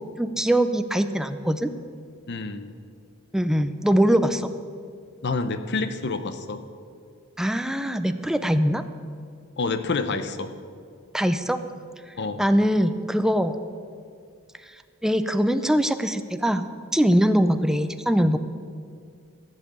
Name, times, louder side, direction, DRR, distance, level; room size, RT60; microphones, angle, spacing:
voice 1, 0.0-1.7 3.3-4.5 7.4-8.8 11.1-11.6 12.4-13.6 15.0-16.6 16.9-18.4, equal, ahead, 10 dB, 0.5 m, -22 dB
voice 2, 2.3-2.7 5.2-6.6 9.6-10.5 12.2-12.4, left 3 dB, 55° left, 10 dB, 0.8 m, -28 dB
14.5 x 5.7 x 8.5 m, 2.3 s
head